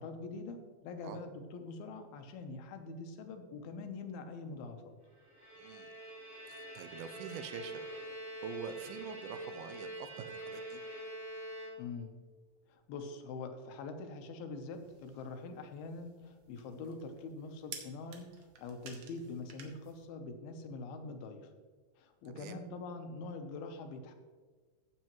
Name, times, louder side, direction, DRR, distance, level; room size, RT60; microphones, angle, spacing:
voice 1, 0.0-4.9 11.8-12.1 12.7-21.4 22.0-24.1, left 3 dB, 85° left, 6 dB, 2.8 m, -44 dB
Bowed string instrument, 5.2-12.2, right 1 dB, 45° right, 4.7 m, -46 dB
voice 2, 5.6-5.9 6.5-7.8 8.4-10.8 22.3-22.6, right 6 dB, 90° right, 9 dB, 2.6 m, -45 dB
sound 1, 14.7-20.1, right 6 dB, 65° right, 2.1 m, -54 dB
14.5 x 7.6 x 3.0 m, 1.5 s
omnidirectional pair, 4.3 m